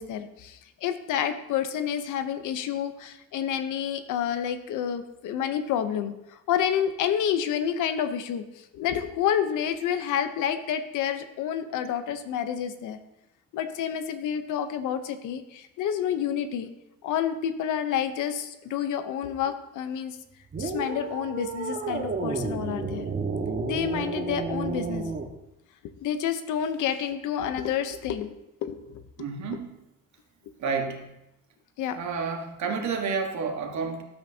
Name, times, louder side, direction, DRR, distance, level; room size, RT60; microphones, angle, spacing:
voice 1, 0.0-13.0 13.5-16.7 17.0-20.2 20.6-23.1 23.6-25.1 25.8-28.3 28.6-29.0 31.8-32.0, left 9 dB, 90° left, 10 dB, 0.8 m, -29 dB
sound 1, 20.5-25.3, right 4 dB, 35° right, 1.4 m, -31 dB
voice 2, 29.2-29.7 30.6-31.1 32.0-34.0, right 5 dB, 70° right, 3 dB, 1.5 m, -30 dB
12.0 x 8.0 x 2.8 m, 0.87 s
cardioid pair, 90°, 30 cm